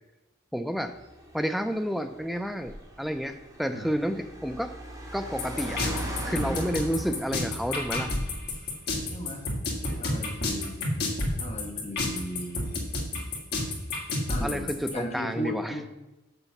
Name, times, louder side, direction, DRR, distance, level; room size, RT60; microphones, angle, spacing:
voice 1, 0.5-0.9 1.3-4.7 5.1-6.0 6.2-8.1 14.4-15.7, equal, ahead, 7 dB, 0.4 m, -30 dB
Car, 0.8-8.7, equal, 20° right, 2.1 m, -40 dB
sound 1, 5.4-14.9, left 2 dB, 55° left, 1.9 m, -29 dB
voice 2, 6.3-6.8 9.1-9.5 9.8-10.8 11.4-12.7 14.3-15.9, equal, 35° left, 1 dB, 1.5 m, -36 dB
6.9 x 6.7 x 5.8 m, 0.98 s
head